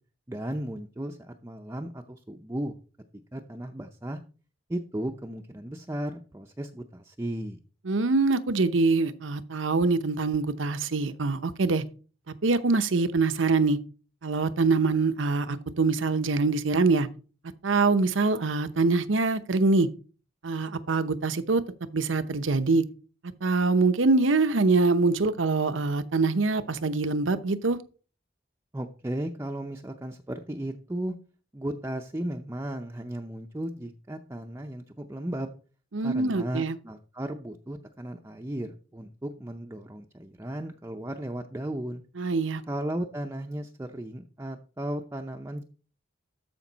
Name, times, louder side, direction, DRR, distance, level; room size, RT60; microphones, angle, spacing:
voice 1, 0.3-2.8 3.1-4.2 4.7-7.6 28.7-31.1 31.5-35.6 36.0-42.0 42.7-45.6, right 1 dB, 15° right, 0.6 m, -35 dB
voice 2, 7.9-11.8 12.4-13.8 14.2-17.1 17.6-19.9 20.4-21.6 21.9-22.8 23.4-27.8 35.9-36.8 42.2-42.6, right 3 dB, 85° right, 0.8 m, -24 dB
13.0 x 5.2 x 4.0 m
head